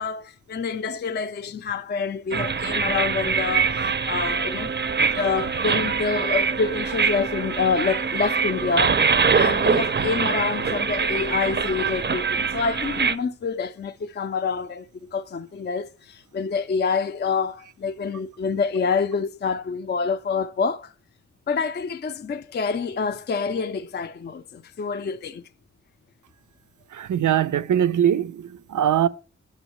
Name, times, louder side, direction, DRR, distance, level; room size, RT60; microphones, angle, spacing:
voice 1, 0.0-4.7 5.1-14.9 15.1-20.9 21.5-25.4, left 5 dB, 35° left, 0.4 m, -27 dB
sound 1, 2.3-13.2, right 5 dB, 35° right, 0.5 m, -24 dB
voice 2, 26.9-29.1, right 10 dB, 90° right, 0.5 m, -22 dB
9.4 x 6.3 x 3.0 m
cardioid pair, 55°, 30 cm